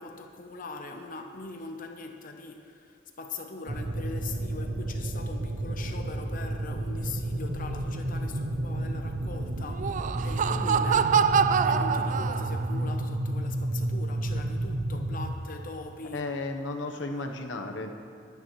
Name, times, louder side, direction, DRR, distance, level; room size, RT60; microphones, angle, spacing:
voice 1, 0.0-11.2 11.6-16.3 16.9-17.3, left 3 dB, 45° left, 4 dB, 0.8 m, -41 dB
sound 1, 3.7-15.3, right 1 dB, 65° right, 0.9 m, -31 dB
Laughter, 9.7-12.8, right 7 dB, 40° right, 0.3 m, -25 dB
voice 2, 16.1-17.9, left 2 dB, 70° left, 4 dB, 1.0 m, -34 dB
25.5 x 9.1 x 3.2 m, 2.4 s
head